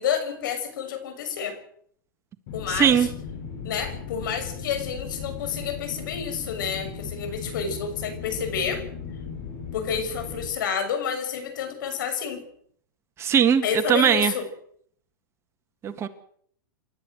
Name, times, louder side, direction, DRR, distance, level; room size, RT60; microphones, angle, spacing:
voice 1, 0.0-1.6 2.5-3.1 3.6-8.8 9.7-12.4 13.6-14.5, left 7 dB, 65° left, 9 dB, 6.6 m, -29 dB
sound 1, 2.5-10.5, left 6 dB, 50° left, 7.4 m, -37 dB
voice 2, 2.8-3.1 13.2-13.6 13.9-14.3 15.8-16.1, right 8 dB, 25° right, 9 dB, 1.7 m, -19 dB
29.0 x 13.0 x 8.0 m, 0.64 s
hypercardioid pair, 135°, 11 cm